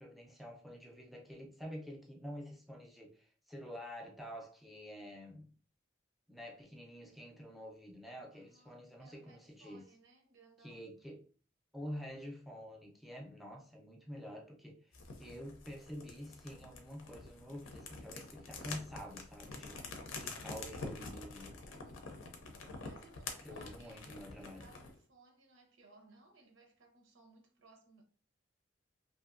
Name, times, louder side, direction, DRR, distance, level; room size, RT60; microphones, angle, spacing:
voice 1, 0.0-5.5 6.3-9.8 10.6-11.2 11.7-21.6 23.4-24.6, equal, ahead, 0.5 m, -48 dB
voice 2, 8.3-10.9 22.8-24.1 24.4-28.0, right 2 dB, 80° right, 0.7 m, -63 dB
sound 1, 14.9-25.0, left 3 dB, 90° left, 0.6 m, -47 dB
2.7 x 2.6 x 2.5 m
head